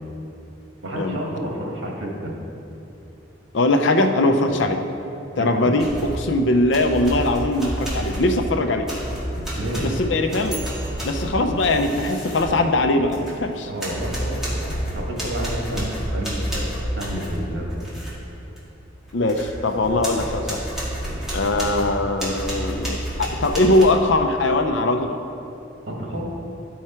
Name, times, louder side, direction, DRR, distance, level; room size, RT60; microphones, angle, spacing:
voice 1, 0.8-2.3 4.5-4.6 5.3-5.9 9.3-9.9 13.6-17.7 19.9-20.0 21.0-21.3 26.0-26.3, right 1 dB, 80° right, -2 dB, 1.7 m, -30 dB
voice 2, 3.5-4.8 5.4-8.9 9.8-10.7 11.0-13.7 19.1-20.6 21.3-25.2, left 2 dB, 70° left, 5 dB, 0.6 m, -21 dB
sound 1, 5.8-6.3 6.7-13.5 13.8-18.2 18.6-18.7 19.1-23.8, equal, 5° right, 1.8 m, -30 dB
12.0 x 4.7 x 4.4 m, 2.8 s
head